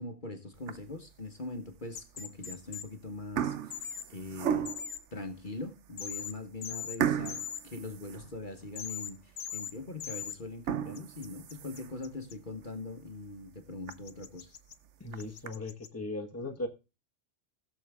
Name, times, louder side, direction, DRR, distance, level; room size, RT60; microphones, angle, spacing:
voice 1, 0.0-4.7 5.1-14.5, left 2 dB, 40° left, 1.4 m, -42 dB
sound 1, 0.6-1.1 1.7-1.8 2.6-2.9 3.1-5.0 5.6-5.7 6.1-6.2 7.0-8.8 9.2-9.3 9.8-9.9 10.5-12.1 12.6-12.7 13.1-13.2 13.5-13.6 13.9-14.0 14.9-15.5, right 9 dB, 65° right, 1.0 m, -35 dB
sound 2, 2.0-2.8 3.7-4.0 4.7-5.0 6.0-6.3 6.6-7.0 7.3-7.6 8.8-9.1 9.4-9.7 10.0-10.4 11.0-12.3 13.9-14.7 15.2-15.9, left 8 dB, 75° left, 1.3 m, -40 dB
voice 2, 15.0-16.7, left 2 dB, 10° left, 1.2 m, -38 dB
17.0 x 7.0 x 3.5 m
omnidirectional pair, 1.3 m